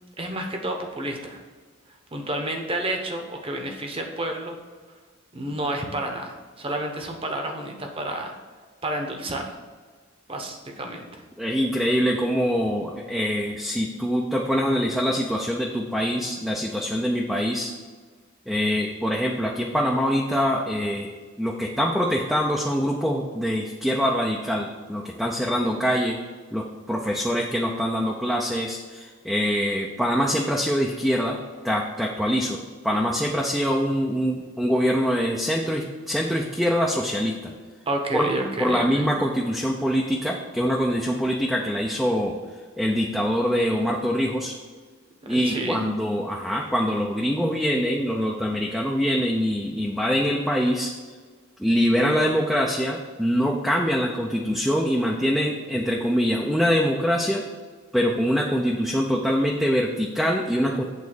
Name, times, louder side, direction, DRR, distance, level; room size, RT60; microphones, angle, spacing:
voice 1, 0.2-1.4 2.1-4.5 5.3-8.4 8.8-9.5 10.3-11.2 37.9-39.1 45.3-45.9, right 1 dB, 25° right, 3 dB, 1.0 m, -30 dB
voice 2, 11.4-17.7 18.5-26.2 26.5-31.4 31.6-37.5 38.1-38.3 38.6-42.3 42.8-44.5 45.3-50.9 51.6-57.4 57.9-60.8, equal, ahead, -2 dB, 0.6 m, -24 dB
8.5 x 4.1 x 6.5 m, 1.5 s
head